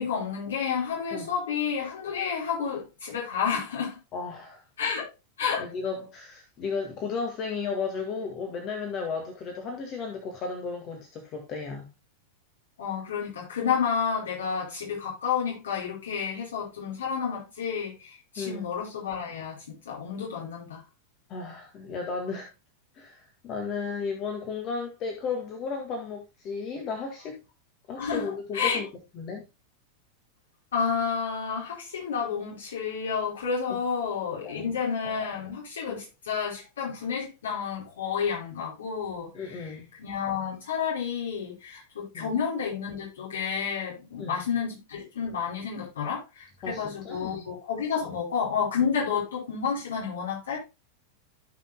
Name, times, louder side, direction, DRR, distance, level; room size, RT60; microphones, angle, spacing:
voice 1, 0.0-4.0 4.8-5.1 5.4-5.7 12.8-20.8 28.0-28.8 30.7-39.7 40.0-50.6, left 6 dB, 65° left, 5.0 m, -30 dB
voice 2, 4.1-4.6 5.6-11.9 18.4-18.7 21.3-22.5 22.9-27.4 27.9-28.9 29.1-29.4 34.3-34.8 35.9-36.0 39.3-39.9 42.1-42.3 44.2-44.5 46.6-47.5 48.0-48.1, left 5 dB, 35° left, 1.8 m, -34 dB
16.0 x 5.7 x 2.2 m
figure-of-eight pair, 90°, 0 cm